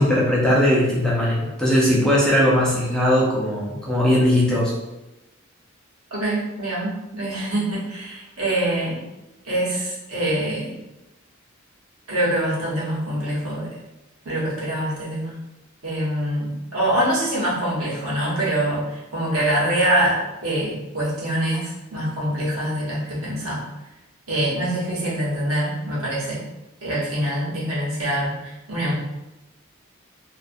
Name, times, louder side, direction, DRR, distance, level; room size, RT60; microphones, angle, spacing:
voice 1, 0.0-4.7, left 1 dB, 5° left, -6 dB, 0.5 m, -19 dB
voice 2, 6.1-9.0 9.4-10.7 12.1-13.7 14.2-15.4 15.8-23.6 24.3-26.4 26.8-28.9, right 1 dB, 85° right, -6 dB, 1.0 m, -24 dB
2.4 x 2.4 x 2.5 m, 0.97 s
head